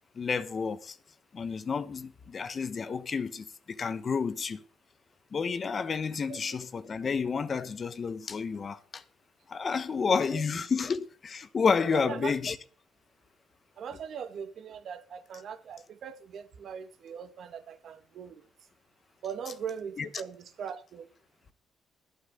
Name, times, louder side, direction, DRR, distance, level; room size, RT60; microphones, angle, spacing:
voice 1, 0.1-1.0 1.3-4.6 5.3-9.0 9.5-12.6 20.0-20.1, left 5 dB, 40° left, 1.2 m, -30 dB
voice 2, 10.1-10.4 11.9-12.3 13.8-18.5 19.2-21.1, right 7 dB, 65° right, 2.0 m, -40 dB
14.0 x 8.5 x 6.7 m
cardioid pair, 90°, 0 cm